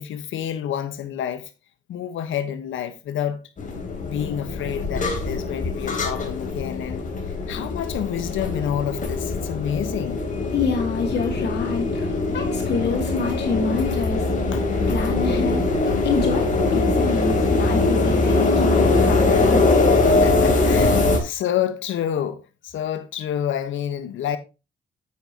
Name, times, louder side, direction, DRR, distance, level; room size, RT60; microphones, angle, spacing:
voice 1, 0.0-1.5 1.9-3.4 3.9-7.1 7.5-10.2 14.5-14.7 20.0-24.4, left 9 dB, 75° left, 1.4 m, -28 dB
sound 1, 3.6-21.2, left 3 dB, 40° left, 3.7 m, -22 dB
voice 2, 10.5-14.2 14.9-19.6, left 4 dB, 60° left, 2.2 m, -27 dB
9.1 x 9.0 x 3.0 m
cardioid pair, 90°, 20 cm